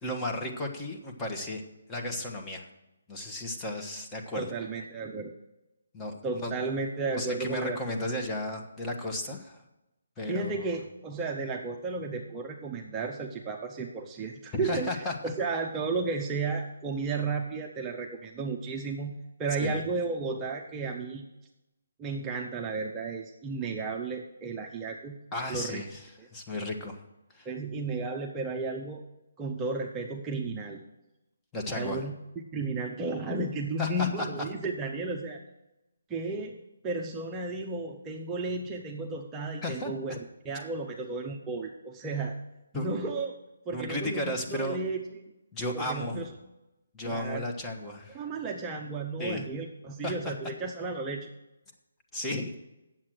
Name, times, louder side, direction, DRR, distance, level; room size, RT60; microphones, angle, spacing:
voice 1, 0.0-1.6 1.9-2.7 3.1-4.4 5.9-6.5 7.1-9.6 10.2-10.7 14.5-15.1 19.6-19.8 25.3-26.0 26.3-27.0 27.3-27.5 31.5-32.0 33.8-34.3 39.6-39.9 42.7-42.9 43.7-44.8 45.5-46.2 46.9-48.3 49.2-49.5 50.0-50.3 52.1-52.6, left 1 dB, 15° left, 1 dB, 1.2 m, -34 dB
voice 2, 4.3-5.3 6.2-7.8 10.3-21.2 22.0-25.2 25.5-25.8 26.2-26.3 27.5-29.1 29.4-30.8 31.7-35.4 36.1-40.2 40.4-42.4 42.7-43.3 43.7-45.3 45.7-46.3 47.0-47.4 48.1-51.3, right 3 dB, 15° right, 0 dB, 0.7 m, -33 dB
8.6 x 7.5 x 6.2 m, 0.97 s
figure-of-eight pair, 145°, 0 cm